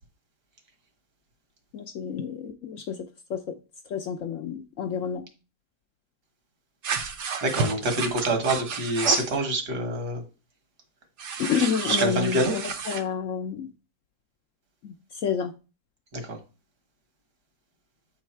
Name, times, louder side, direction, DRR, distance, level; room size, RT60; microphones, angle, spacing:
voice 1, 1.7-3.0 3.3-3.5 3.9-5.2 11.4-13.7 14.8-15.5, left 7 dB, 65° left, 0.8 m, -29 dB
sound 1, 6.8-9.4 11.2-13.0, right 5 dB, 55° right, 0.9 m, -31 dB
voice 2, 7.4-10.2 11.8-12.5 16.1-16.4, right 2 dB, 75° right, 2.1 m, -26 dB
8.2 x 4.0 x 4.4 m
omnidirectional pair, 1.8 m